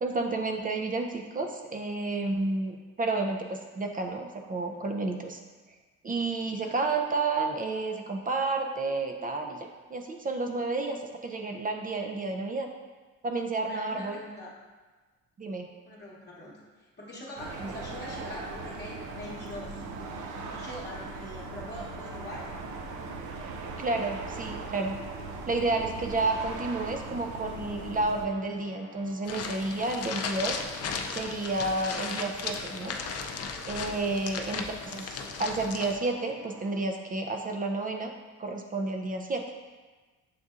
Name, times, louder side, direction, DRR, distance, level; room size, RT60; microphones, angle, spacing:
voice 1, 0.0-5.4 6.0-12.7 13.2-14.2 15.4-15.7 17.6-17.7 23.8-25.0 25.5-30.6 31.1-33.0 33.7-38.1 38.4-39.4, right 3 dB, 30° right, 3 dB, 0.4 m, -31 dB
voice 2, 13.6-14.5 15.9-19.8 20.3-22.6 33.9-34.1, left 1 dB, 35° left, -6 dB, 1.0 m, -43 dB
sound 1, 17.4-28.3, right 4 dB, 85° right, 0.5 m, -39 dB
sound 2, 17.7-36.9, left 1 dB, 50° right, 1.4 m, -50 dB
sound 3, 29.2-36.0, left 5 dB, 55° left, 0.5 m, -36 dB
7.3 x 2.6 x 2.4 m, 1.3 s
cardioid pair, 90°, 30 cm